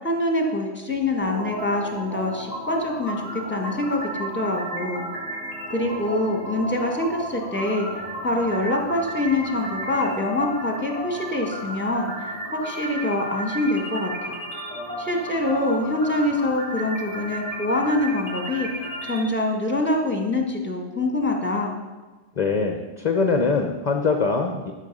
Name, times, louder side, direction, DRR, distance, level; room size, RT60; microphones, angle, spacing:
voice 1, 0.0-5.0 5.7-7.9 8.2-14.3 15.0-18.7 19.0-21.8, left 1 dB, 10° left, 2 dB, 1.5 m, -25 dB
sound 1, 1.2-19.2, right 1 dB, 20° right, 3.4 m, -34 dB
voice 2, 22.3-24.7, left 4 dB, 40° left, 4 dB, 0.8 m, -23 dB
12.5 x 6.5 x 5.4 m, 1.3 s
omnidirectional pair, 1.3 m